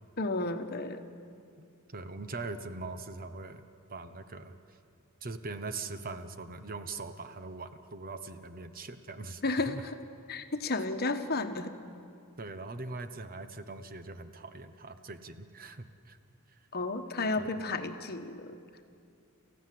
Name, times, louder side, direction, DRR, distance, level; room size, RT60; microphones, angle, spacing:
voice 1, 0.2-1.0 9.4-10.0 10.3-11.7 16.7-18.6, left 3 dB, 45° left, 7 dB, 1.2 m, -32 dB
voice 2, 1.9-3.6 3.9-4.8 5.2-9.8 12.4-16.2 16.5-16.6 17.4-17.5, right 3 dB, 40° right, 9 dB, 1.0 m, -41 dB
29.0 x 15.0 x 7.7 m, 2.4 s
head